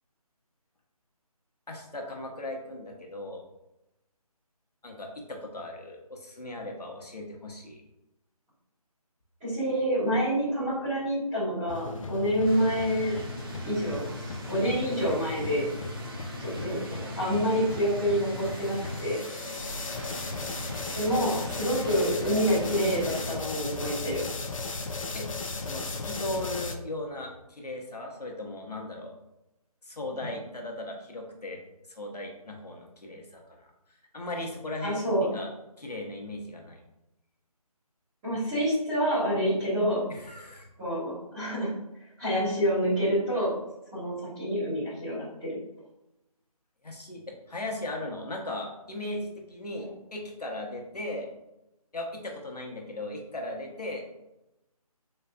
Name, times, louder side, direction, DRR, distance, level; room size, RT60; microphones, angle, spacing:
voice 1, 1.7-3.4 4.8-7.8 16.9-17.2 25.1-25.3 25.6-29.1 29.8-31.6 31.9-33.7 34.1-35.5 35.8-36.8 40.1-40.7 46.8-51.3 51.9-54.1, left 1 dB, 85° left, 0 dB, 1.1 m, -37 dB
voice 2, 9.4-13.1 13.6-14.0 14.5-15.6 16.4-16.8 17.1-19.2 20.9-24.2 34.8-35.3 38.2-40.0 40.8-41.7 42.2-43.5 43.9-45.6 49.7-49.9, equal, 5° right, -17 dB, 0.4 m, -27 dB
sound 1, 11.7-26.7, left 3 dB, 55° left, 0.4 m, -36 dB
sound 2, 12.4-23.4, right 2 dB, 35° right, 0.7 m, -42 dB
3.8 x 3.3 x 2.3 m, 0.90 s
figure-of-eight pair, 160°, 20 cm